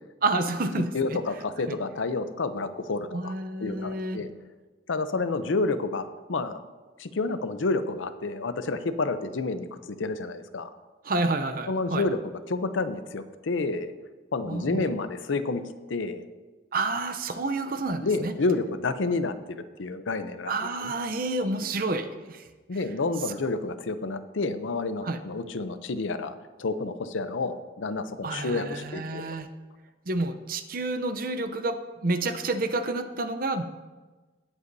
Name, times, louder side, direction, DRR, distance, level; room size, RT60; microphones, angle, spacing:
voice 1, 0.2-1.2 1.7-1.8 3.1-4.2 11.0-12.0 14.5-14.9 16.7-18.3 20.5-22.4 25.0-25.2 28.2-29.5 30.1-33.6, right 2 dB, 45° right, 9 dB, 0.6 m, -29 dB
voice 2, 0.9-3.3 3.6-4.3 4.9-6.6 7.0-10.7 11.7-13.9 14.3-15.6 15.9-16.2 18.0-20.9 22.7-26.3 26.6-29.3, left 3 dB, 75° left, 11 dB, 0.6 m, -29 dB
17.5 x 8.1 x 2.7 m, 1.3 s
head